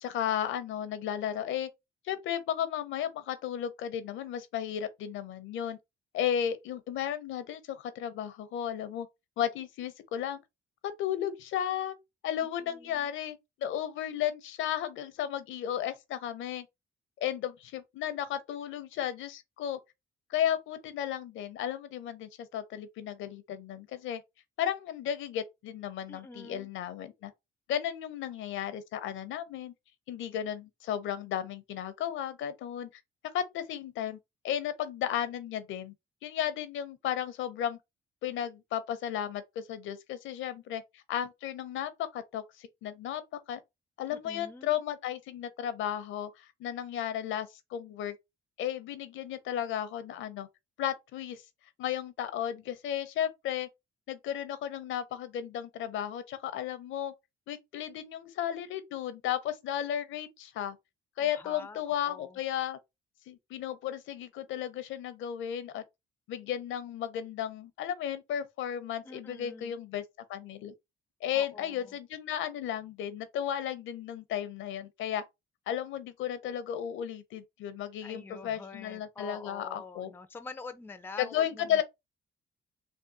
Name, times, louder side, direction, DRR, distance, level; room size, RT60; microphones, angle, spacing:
voice 1, 0.0-1.7 2.0-5.8 6.1-9.1 9.4-10.4 10.8-11.9 12.2-16.7 17.2-19.8 20.3-24.2 24.6-27.3 27.7-29.7 30.1-32.9 33.3-34.2 34.4-35.9 36.2-37.8 38.2-43.2 43.5-43.6 44.0-48.2 48.6-50.5 50.8-51.4 51.8-53.7 54.1-57.1 57.5-60.8 61.2-62.8 63.3-65.8 66.3-70.0 70.3-70.7 71.2-75.2 75.7-80.1 81.2-81.8, left 10 dB, 80° left, 0.6 m, -34 dB
voice 2, 12.4-13.1 26.1-26.7 44.1-44.7 61.2-62.4 69.0-69.8 71.3-72.0 78.0-81.8, left 4 dB, 10° left, 0.4 m, -46 dB
3.5 x 2.2 x 2.6 m
cardioid pair, 90°, 20 cm